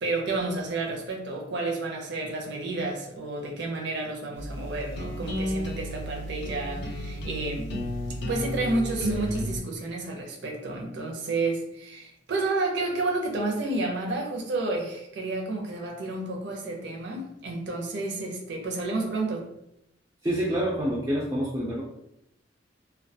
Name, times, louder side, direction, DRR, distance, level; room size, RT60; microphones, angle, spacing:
voice 1, 0.0-7.7 8.3-19.5, right 2 dB, 65° right, 0 dB, 0.6 m, -30 dB
sound 1, 4.4-9.6, equal, 60° left, 0.5 m, -32 dB
voice 2, 20.2-21.8, equal, 15° right, -5 dB, 0.3 m, -27 dB
2.2 x 2.2 x 2.6 m, 0.80 s
head